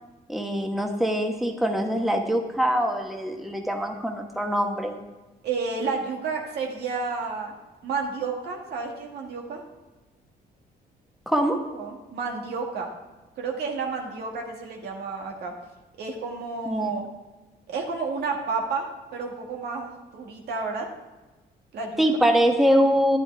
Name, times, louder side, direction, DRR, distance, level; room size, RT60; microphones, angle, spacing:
voice 1, 0.3-5.0 11.3-11.6 16.7-16.9 22.0-23.2, equal, ahead, 2 dB, 1.1 m, -23 dB
voice 2, 5.4-7.5 7.8-9.6 11.7-12.9 13.4-15.5 16.0-17.0 17.7-20.9 21.7-22.3, right 4 dB, 80° right, 0 dB, 2.0 m, -31 dB
11.0 x 10.5 x 3.4 m, 1.2 s
cardioid pair, 105°, 17 cm